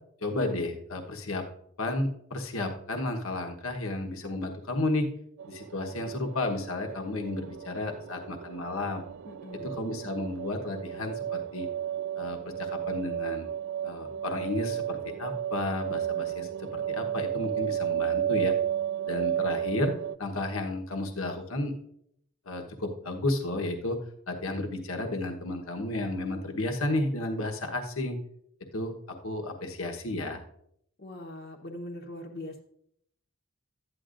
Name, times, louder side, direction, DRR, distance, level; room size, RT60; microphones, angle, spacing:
voice 1, 0.2-1.4 1.8-5.1 5.5-9.0 9.6-11.7 12.1-13.5 13.8-18.5 19.1-21.8 22.5-24.0 24.3-28.2 28.7-28.9 29.2-30.4, left 2 dB, 70° left, 3 dB, 1.2 m, -32 dB
sound 1, 5.4-20.2, right 10 dB, 60° right, 0.3 m, -33 dB
voice 2, 9.3-9.8 31.0-32.6, left 1 dB, 50° left, -1 dB, 1.0 m, -41 dB
12.5 x 9.9 x 2.5 m, 0.72 s
head